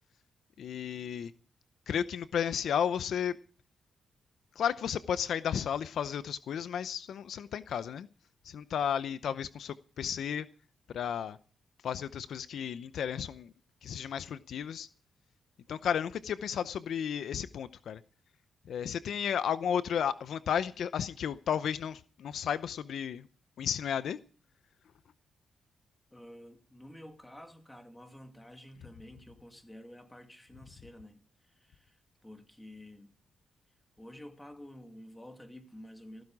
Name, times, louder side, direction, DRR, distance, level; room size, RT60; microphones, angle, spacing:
voice 1, 0.6-1.3 1.9-3.3 4.6-8.1 8.4-10.5 10.9-11.4 11.8-13.5 13.8-14.9 15.7-18.0 18.7-23.3 23.6-24.2, left 8 dB, 75° left, 0.6 m, -33 dB
voice 2, 26.1-33.1 34.0-36.2, left 1 dB, 10° left, 2.5 m, -50 dB
16.0 x 14.5 x 4.8 m
cardioid pair, 110°, 0 cm